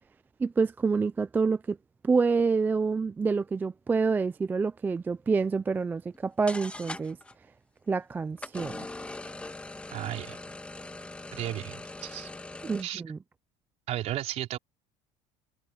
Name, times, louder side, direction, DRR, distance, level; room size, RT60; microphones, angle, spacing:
voice 1, 0.4-1.8 2.0-7.2 7.9-8.9 12.6-13.2, right 4 dB, 10° right, 0.3 m, -27 dB
sound 1, 6.1-6.2 6.5-7.3 8.4-12.8, left 2 dB, 10° left, 1.7 m, -41 dB
voice 2, 9.9-10.4 11.3-12.3 12.8-13.0 13.9-14.6, right 13 dB, 50° right, 4.2 m, -34 dB
cardioid pair, 155°, 15 cm